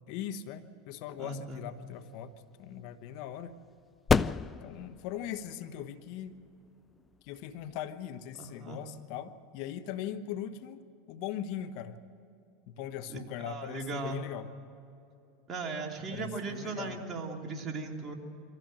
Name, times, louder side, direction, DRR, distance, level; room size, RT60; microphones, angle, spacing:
voice 1, 0.1-2.3 2.6-3.6 4.6-6.4 7.2-12.0 12.7-14.5 16.1-17.0, left 10 dB, 60° left, 11 dB, 1.0 m, -40 dB
voice 2, 1.2-1.6 8.4-8.8 13.4-14.2 15.5-18.1, right 3 dB, 30° right, 1 dB, 3.0 m, -37 dB
sound 1, 1.7-8.8, left 5 dB, 20° left, 0.4 m, -35 dB
24.0 x 15.5 x 7.6 m, 2.7 s
hypercardioid pair, 95°, 0 cm